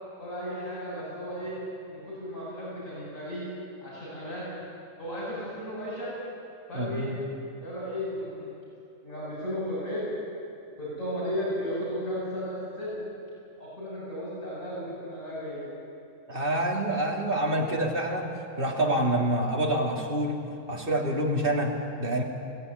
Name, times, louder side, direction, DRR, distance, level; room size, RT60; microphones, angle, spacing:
voice 1, 0.2-1.5 1.9-3.4 3.8-4.5 5.0-6.1 6.7-7.1 7.6-8.5 9.0-10.0 10.8-13.0 13.6-15.6, equal, 80° left, -7 dB, 8.3 m, -34 dB
voice 2, 6.7-7.2 16.3-18.3 18.6-20.4 20.7-22.2, right 1 dB, 40° right, -1 dB, 3.1 m, -27 dB
19.5 x 18.0 x 9.8 m, 2.6 s
omnidirectional pair, 1.4 m